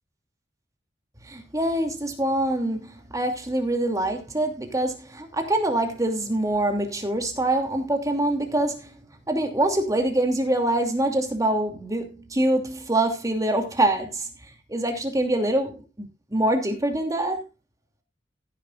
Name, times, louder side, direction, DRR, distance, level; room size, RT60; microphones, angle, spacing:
voice 1, 1.3-8.9 9.3-14.3 14.7-17.4, right 1 dB, 20° right, 2.7 m, -25 dB
16.0 x 10.5 x 2.5 m
head